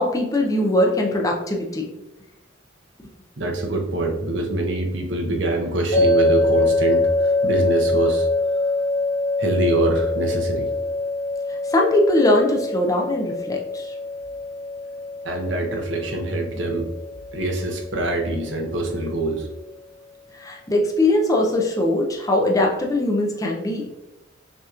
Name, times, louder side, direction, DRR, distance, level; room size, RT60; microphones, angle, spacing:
voice 1, 0.0-1.9 11.7-13.9 20.4-23.9, left 1 dB, 20° left, 0 dB, 0.5 m, -21 dB
voice 2, 3.4-8.3 9.4-10.7 15.2-16.9 17.3-19.5, right 2 dB, 70° right, 1 dB, 0.8 m, -24 dB
sound 1, 5.9-19.0, left 2 dB, 45° left, 1.4 m, -24 dB
6.1 x 2.9 x 2.4 m, 0.95 s
head